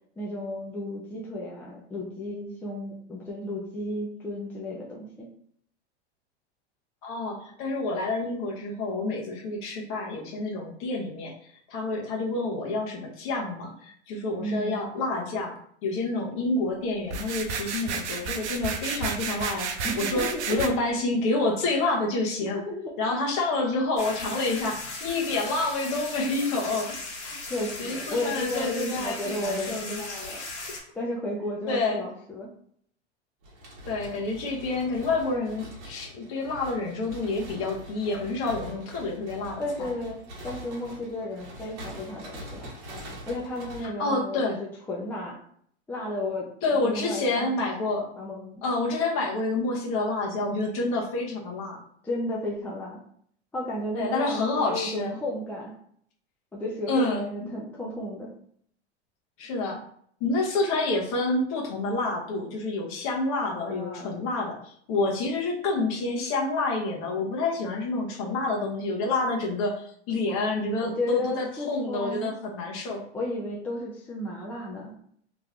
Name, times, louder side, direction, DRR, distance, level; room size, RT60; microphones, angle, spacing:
voice 1, 0.2-5.3 14.4-14.8 19.8-20.7 22.4-22.9 27.5-30.4 30.9-32.5 39.6-40.2 40.4-42.7 43.3-45.4 45.9-46.5 46.8-47.5 48.2-48.6 52.0-53.0 53.5-55.7 56.5-58.3 63.7-64.2 70.8-72.4 73.1-75.0, left 1 dB, 5° left, -4 dB, 0.4 m, -33 dB
voice 2, 7.0-11.3 11.7-15.5 15.8-22.6 23.0-27.0 27.8-30.0 31.7-32.0 33.9-39.9 43.8-44.6 46.6-48.1 48.6-51.8 53.9-55.2 56.9-57.5 59.4-59.8 60.2-73.0, left 2 dB, 40° left, -2 dB, 1.0 m, -28 dB
sound 1, 17.1-20.7, right 5 dB, 80° right, 0.6 m, -32 dB
sound 2, 24.0-30.8, left 3 dB, 85° left, 1.2 m, -37 dB
sound 3, 33.4-43.9, equal, 45° right, 1.3 m, -43 dB
3.1 x 3.0 x 2.4 m, 0.63 s
hypercardioid pair, 115°, 34 cm